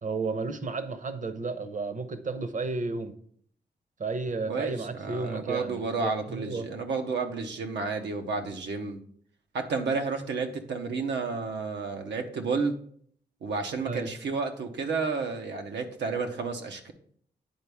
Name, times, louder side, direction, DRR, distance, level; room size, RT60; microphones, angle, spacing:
voice 1, 0.0-3.1 4.0-6.7 13.8-14.1, right 3 dB, 45° right, 10 dB, 0.8 m, -33 dB
voice 2, 4.5-9.0 9.5-12.8 13.4-16.9, right 4 dB, 85° right, 5 dB, 0.8 m, -31 dB
9.5 x 4.1 x 3.5 m, 0.62 s
cardioid pair, 55°, 18 cm